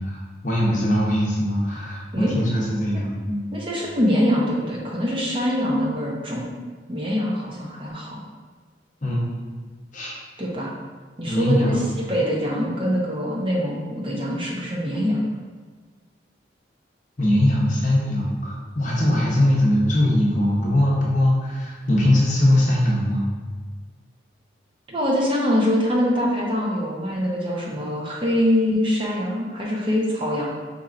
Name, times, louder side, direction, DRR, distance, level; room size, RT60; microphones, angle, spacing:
voice 1, 0.0-3.5 9.0-9.3 9.9-10.2 11.2-12.0 17.2-23.3, left 1 dB, 40° left, -5 dB, 0.8 m, -21 dB
voice 2, 3.5-6.4 6.9-8.2 10.4-10.7 11.2-15.2 24.9-30.5, equal, 25° right, -3 dB, 0.7 m, -24 dB
4.3 x 4.2 x 2.5 m, 1.4 s
head